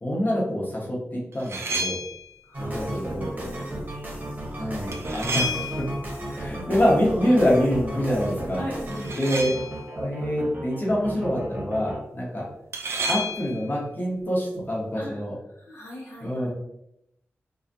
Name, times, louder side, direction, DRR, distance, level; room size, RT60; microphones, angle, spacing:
voice 1, 0.0-2.0 2.6-3.5 4.6-5.6 6.3-8.6 9.1-9.5 9.9-12.5 13.1-15.3 16.2-16.5, equal, 40° left, -4 dB, 1.1 m, -25 dB
sound 1, 1.3-2.3 4.9-6.1 8.9-9.9 12.7-13.7, equal, 65° right, 0.4 m, -30 dB
voice 2, 2.5-2.9 3.7-3.8 8.6-9.2 15.0-15.2 15.5-16.5, equal, 75° left, -5 dB, 0.7 m, -38 dB
sound 2, 2.5-12.0, right 1 dB, 35° right, 0.8 m, -34 dB
2.4 x 2.3 x 2.6 m, 0.79 s
cardioid pair, 45°, 5 cm